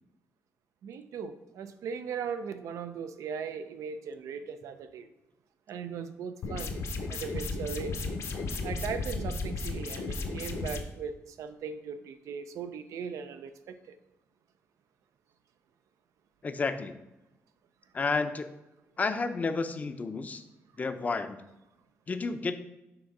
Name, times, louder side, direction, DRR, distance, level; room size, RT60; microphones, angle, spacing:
voice 1, 0.8-5.1 5.7-6.7 7.1-8.0 8.6-14.0, right 6 dB, 85° right, 10 dB, 0.5 m, -38 dB
sound 1, 6.4-10.8, left 3 dB, 65° left, 0.8 m, -34 dB
voice 2, 16.4-16.9 17.9-18.5 19.0-20.4 20.8-21.4 22.1-22.6, left 4 dB, 30° left, 9 dB, 0.5 m, -31 dB
5.9 x 3.6 x 5.3 m, 0.96 s
cardioid pair, 120°, 5 cm